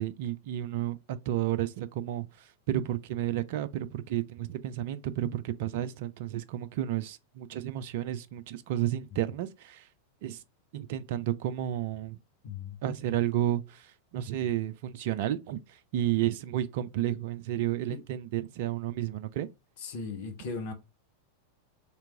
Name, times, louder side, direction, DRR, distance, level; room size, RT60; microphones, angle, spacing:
voice 1, 0.0-9.9 10.2-10.4 10.7-12.2 12.8-19.5, right 12 dB, 50° right, 0.3 m, -32 dB
voice 2, 12.4-12.7 17.9-18.0 19.8-20.7, left 4 dB, 50° left, 0.9 m, -37 dB
3.3 x 2.9 x 4.6 m
figure-of-eight pair, 90°, 0 cm